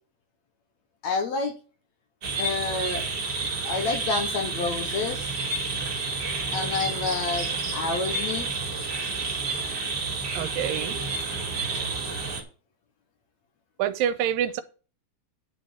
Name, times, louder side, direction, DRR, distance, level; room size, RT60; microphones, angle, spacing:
voice 1, 1.0-1.6 2.4-3.1 3.6-5.3 6.5-8.5, left 4 dB, 65° left, 1.9 m, -29 dB
sound 1, 2.2-12.4, right 3 dB, 35° right, 2.1 m, -30 dB
voice 2, 10.3-11.0 13.8-14.6, right 10 dB, 85° right, 2.4 m, -26 dB
10.5 x 4.9 x 5.8 m
omnidirectional pair, 4.1 m